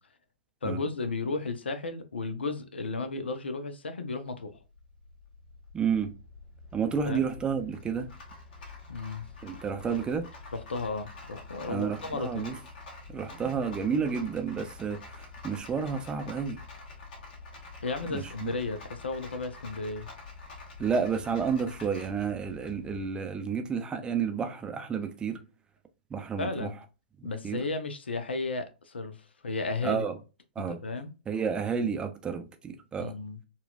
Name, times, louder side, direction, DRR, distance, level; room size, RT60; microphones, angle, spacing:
voice 1, 0.6-4.6 7.0-7.2 8.9-9.2 10.5-12.5 17.8-20.1 26.4-26.7 27.2-30.1 30.6-31.1 33.0-33.4, left 3 dB, 80° left, 0.6 m, -34 dB
Rattle, 4.5-23.1, left 3 dB, 50° left, 1.5 m, -47 dB
voice 2, 5.7-6.1 6.7-8.1 9.4-10.3 11.7-12.5 13.1-16.6 18.1-18.5 20.8-25.4 26.1-26.7 27.2-27.6 29.8-30.2 30.6-30.8 31.3-33.1, right 6 dB, 15° right, 0.5 m, -31 dB
4.1 x 2.4 x 2.3 m
figure-of-eight pair, 115°, 6 cm